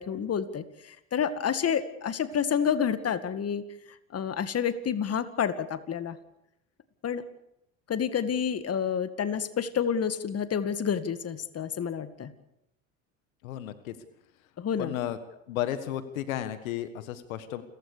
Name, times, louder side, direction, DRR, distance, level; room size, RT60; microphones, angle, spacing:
voice 1, 0.0-3.6 4.1-6.2 7.0-7.2 7.9-12.3 14.6-14.9, left 7 dB, 35° left, 12 dB, 2.1 m, -29 dB
voice 2, 13.4-13.9 14.8-15.2 15.5-17.6, left 12 dB, 80° left, 12 dB, 1.6 m, -33 dB
29.0 x 15.5 x 6.8 m, 0.81 s
hypercardioid pair, 75°, 40 cm